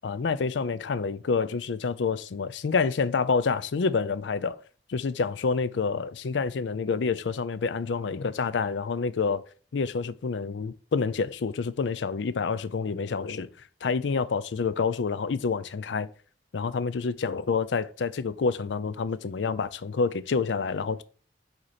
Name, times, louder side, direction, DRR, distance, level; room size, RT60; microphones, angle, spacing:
voice 1, 0.0-4.6 4.9-9.4 9.7-13.5 13.8-16.1 16.5-21.0, left 5 dB, 80° left, 0.5 m, -28 dB
7.8 x 2.9 x 4.2 m
head